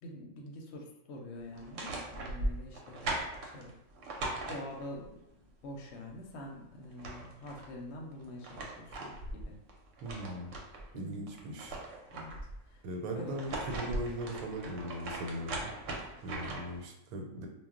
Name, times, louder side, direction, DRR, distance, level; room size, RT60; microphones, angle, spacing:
voice 1, 0.0-3.1 3.4-3.7 4.5-5.2 5.6-9.6 10.9-11.3 12.1-12.3 12.7-13.4, left 1 dB, 65° left, 0 dB, 0.8 m, -46 dB
sound 1, 1.5-5.1 6.5-6.6 6.8-7.7 8.2-10.9 11.3-12.6 13.2-16.8, right 2 dB, 70° right, 0.9 m, -39 dB
voice 2, 10.0-10.6 10.9-11.8 12.8-15.7 16.2-17.5, right 1 dB, 90° right, 2 dB, 1.1 m, -39 dB
2.3 x 2.0 x 3.6 m, 0.89 s
omnidirectional pair, 1.5 m